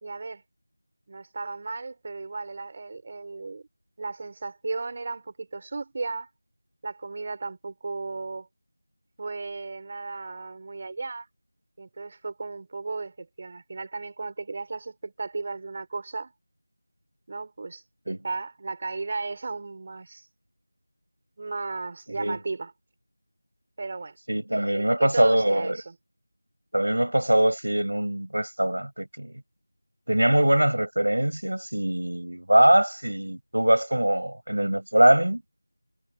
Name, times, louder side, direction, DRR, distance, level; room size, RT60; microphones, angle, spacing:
voice 1, 0.0-0.4 1.1-3.7 4.0-6.3 6.8-8.5 9.2-11.3 11.8-16.3 17.3-20.3 21.4-22.7 23.8-24.2 24.7-26.0, right 3 dB, 25° right, 3.8 m, -35 dB
voice 2, 24.3-25.8 26.7-29.3 30.1-35.4, right 1 dB, 85° right, 6.5 m, -22 dB
figure-of-eight pair, 175°, 0 cm